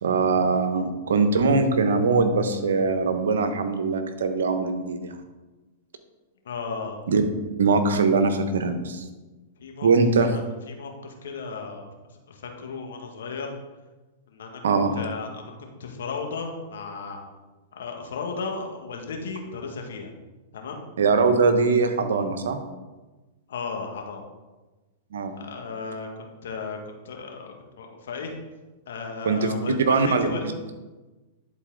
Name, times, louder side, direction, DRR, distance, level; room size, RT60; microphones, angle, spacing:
voice 1, 0.0-5.1 7.1-7.2 7.6-9.0 9.8-10.4 14.6-14.9 21.0-22.6 25.1-25.3 29.2-29.5 29.9-30.3, right 4 dB, 80° right, 8 dB, 0.9 m, -22 dB
voice 2, 6.4-7.0 9.6-9.9 10.2-11.9 12.3-13.5 14.3-14.6 14.9-17.2 17.7-20.1 20.5-20.8 23.5-24.2 25.3-28.3 28.9-30.5, left 4 dB, 75° left, 2 dB, 1.5 m, -35 dB
11.0 x 4.1 x 3.8 m, 1.2 s
hypercardioid pair, 115°, 0 cm